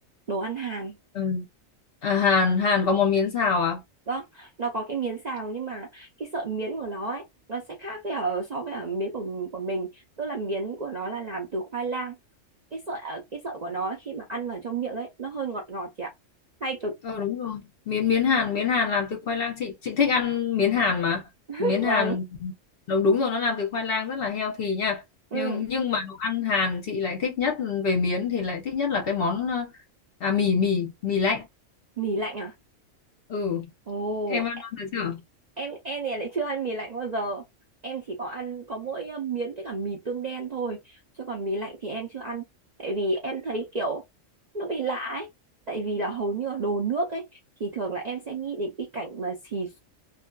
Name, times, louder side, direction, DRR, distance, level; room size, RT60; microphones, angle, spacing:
voice 1, 0.3-1.0 4.1-7.2 7.5-12.2 12.7-16.1 16.6-16.9 21.5-22.2 25.3-25.6 32.0-32.5 33.9-34.4 35.6-37.4 37.8-42.4 42.8-44.0 44.5-45.3 45.7-47.2 47.6-49.8, right 3 dB, 50° right, 0.5 m, -31 dB
voice 2, 1.1-1.5 2.0-3.8 17.0-21.2 21.6-22.5 22.9-25.0 25.3-29.7 30.2-31.5 33.3-33.7 34.3-35.2, left 5 dB, 55° left, 0.8 m, -25 dB
2.6 x 2.4 x 2.2 m
omnidirectional pair, 1.4 m